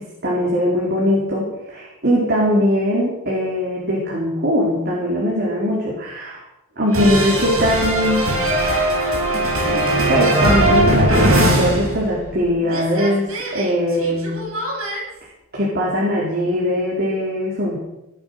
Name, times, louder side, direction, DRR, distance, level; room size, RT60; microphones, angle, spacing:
voice 1, 0.0-6.4 6.8-8.3 10.1-14.4 15.5-17.8, equal, 45° right, -4 dB, 4.3 m, -20 dB
sound 1, 6.9-12.4 12.7-15.0, right 1 dB, 70° right, 7.2 m, -19 dB
18.0 x 11.0 x 6.8 m, 0.94 s
head